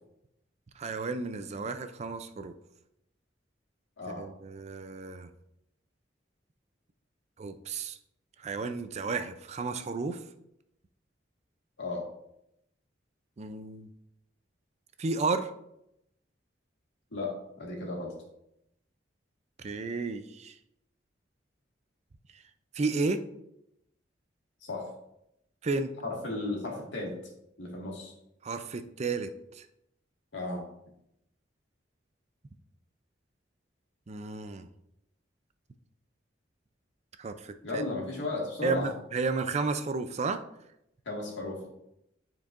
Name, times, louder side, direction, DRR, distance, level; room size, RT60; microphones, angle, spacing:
voice 1, 0.8-2.5 4.2-5.3 7.4-8.0 8.4-10.2 13.4-13.9 15.0-15.5 19.6-20.5 22.7-23.2 25.6-25.9 28.4-29.3 29.6-29.7 34.1-34.7 37.2-37.8 38.6-40.4, right 4 dB, 35° right, 10 dB, 0.4 m, -32 dB
voice 2, 17.1-18.1 24.6-24.8 26.0-27.1 27.6-28.1 30.3-30.6 37.6-38.9 41.1-41.7, left 2 dB, 90° left, -2 dB, 1.9 m, -34 dB
10.0 x 4.5 x 2.5 m, 0.80 s
head